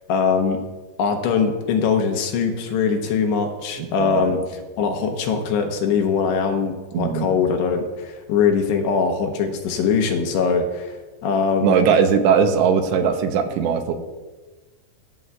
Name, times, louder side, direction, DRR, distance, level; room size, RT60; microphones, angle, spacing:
voice 1, 0.1-0.6 1.0-4.4 4.8-11.0 11.2-11.8, left 6 dB, 80° left, 4 dB, 2.9 m, -21 dB
voice 2, 3.8-4.4 6.9-7.3 11.6-13.9, right 6 dB, 85° right, 6 dB, 2.9 m, -19 dB
22.0 x 7.6 x 2.3 m, 1.3 s
omnidirectional pair, 5.1 m